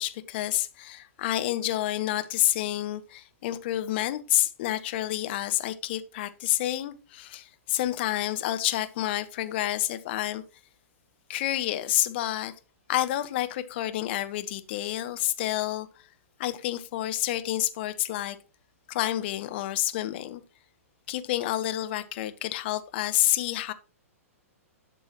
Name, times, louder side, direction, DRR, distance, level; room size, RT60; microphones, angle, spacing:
voice 1, 0.0-10.4 11.3-12.5 12.9-15.9 16.4-18.4 18.9-20.4 21.1-23.7, left 14 dB, 45° left, 1.0 m, -29 dB
11.5 x 6.8 x 3.0 m
figure-of-eight pair, 110°, 8 cm